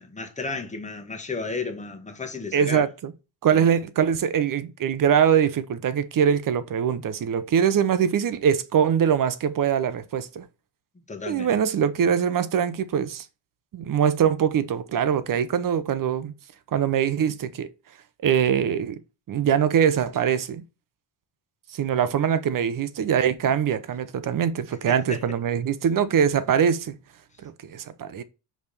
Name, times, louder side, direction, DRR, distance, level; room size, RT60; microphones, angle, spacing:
voice 1, 0.0-2.9 3.5-3.7 11.1-11.5 24.9-25.2, left 4 dB, 15° left, 1.3 m, -33 dB
voice 2, 2.5-3.1 3.4-10.4 11.3-13.2 13.7-16.3 16.7-17.7 18.2-19.0 19.3-20.6 21.7-27.0 27.4-28.2, right 8 dB, 40° right, 0.8 m, -23 dB
5.1 x 3.4 x 5.3 m
cardioid pair, 105°, 48 cm